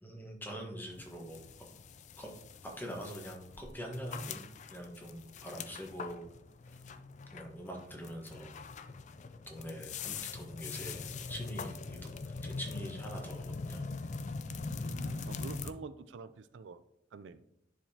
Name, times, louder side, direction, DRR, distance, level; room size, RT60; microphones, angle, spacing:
voice 1, 0.0-1.4 2.2-2.3 2.6-6.2 7.3-8.5 9.5-13.8, equal, 10° left, 0 dB, 1.3 m, -44 dB
sound 1, 0.9-15.7, left 4 dB, 40° left, 0.4 m, -43 dB
voice 2, 14.8-16.8 17.1-17.4, right 4 dB, 75° right, 13 dB, 0.4 m, -47 dB
10.5 x 4.9 x 2.8 m, 0.76 s
head